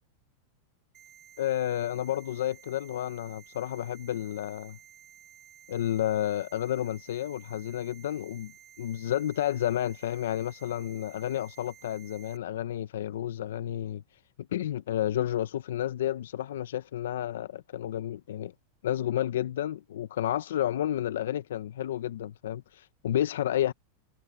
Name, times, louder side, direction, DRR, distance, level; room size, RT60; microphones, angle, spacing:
sound 1, 0.9-12.4, right 11 dB, 30° right, 3.1 m, -54 dB
voice 1, 1.4-4.8 5.7-8.5 8.8-14.0 14.5-18.5 18.8-23.7, left 12 dB, 80° left, 0.8 m, -31 dB
hypercardioid pair, 125°, 0 cm